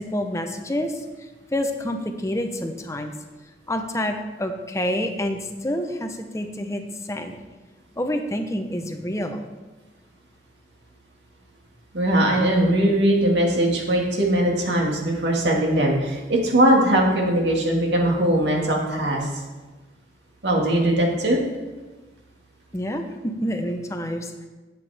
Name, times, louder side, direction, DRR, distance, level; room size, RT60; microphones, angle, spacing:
voice 1, 0.0-3.1 3.7-7.4 8.0-9.4 22.7-24.5, left 1 dB, 15° left, 5 dB, 0.7 m, -28 dB
voice 2, 11.9-19.3 20.4-21.4, right 1 dB, 75° right, -1 dB, 1.9 m, -20 dB
11.0 x 8.3 x 3.5 m, 1.2 s
head